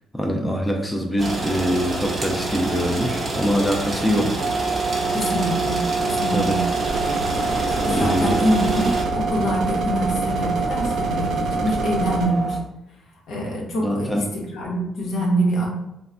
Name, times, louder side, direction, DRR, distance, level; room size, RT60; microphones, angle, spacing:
voice 1, 0.1-4.4 6.3-6.6 7.9-8.5 13.8-14.2, equal, 5° left, 1 dB, 0.4 m, -23 dB
sound 1, 1.2-9.0, right 2 dB, 30° right, 0.7 m, -27 dB
sound 2, 4.4-12.6, right 4 dB, 25° left, 1.0 m, -26 dB
voice 2, 5.1-6.6 7.7-12.6 13.3-15.7, equal, 75° left, -2 dB, 0.8 m, -25 dB
sound 3, 6.9-12.3, right 2 dB, 75° right, 0.5 m, -29 dB
3.1 x 2.1 x 2.5 m, 0.87 s
cardioid pair, 90°, 0 cm